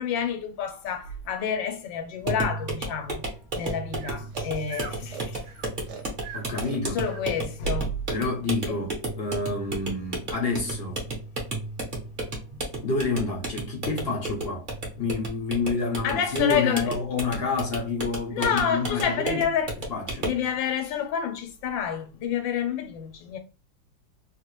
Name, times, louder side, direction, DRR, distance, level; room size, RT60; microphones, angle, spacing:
voice 1, 0.0-3.3 3.5-5.4 6.9-7.9 8.7-8.8 16.0-16.9 18.3-19.7 20.2-23.4, left 7 dB, 80° left, 1.4 m, -28 dB
sound 1, 2.2-20.5, right 2 dB, 35° right, 0.8 m, -33 dB
Breathing, 3.6-7.3, right 7 dB, 70° right, 1.2 m, -41 dB
voice 2, 6.3-7.0 8.1-8.9 9.2-11.0 12.8-14.7 15.0-19.5 19.9-20.3, left 3 dB, 55° left, 0.6 m, -28 dB
3.2 x 2.4 x 3.0 m
omnidirectional pair, 2.0 m